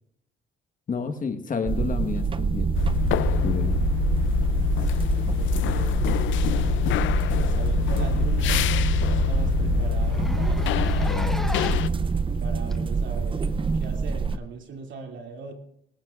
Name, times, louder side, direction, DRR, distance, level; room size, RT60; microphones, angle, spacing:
voice 1, 0.9-2.7 3.4-3.8 11.1-11.5, left 5 dB, 40° left, 7 dB, 1.4 m, -30 dB
sound 1, 1.7-14.4, right 5 dB, 25° right, 0.5 m, -25 dB
sound 2, 2.7-11.9, left 17 dB, 75° left, 0.5 m, -26 dB
voice 2, 4.8-6.0 7.4-10.9 12.4-15.5, right 4 dB, 70° right, 2 dB, 2.6 m, -40 dB
Zipper (clothing), 10.0-12.0 12.7-12.8 13.8-13.9, equal, ahead, 0.8 m, -37 dB
19.0 x 18.5 x 2.5 m, 0.74 s
cardioid pair, 90°, 20 cm